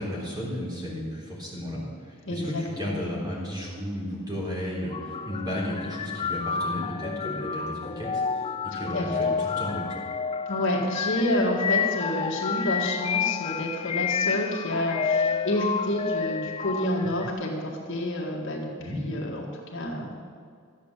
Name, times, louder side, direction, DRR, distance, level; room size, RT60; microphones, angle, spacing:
voice 1, 0.0-8.5 8.7-10.0 18.8-19.2, equal, 20° right, -4 dB, 3.7 m, -33 dB
voice 2, 2.3-3.0 8.7-9.3 10.5-20.1, left 1 dB, 60° left, -1 dB, 2.0 m, -29 dB
sound 1, 4.9-17.3, left 6 dB, 25° left, 0.3 m, -30 dB
13.5 x 8.5 x 7.4 m, 2.2 s
head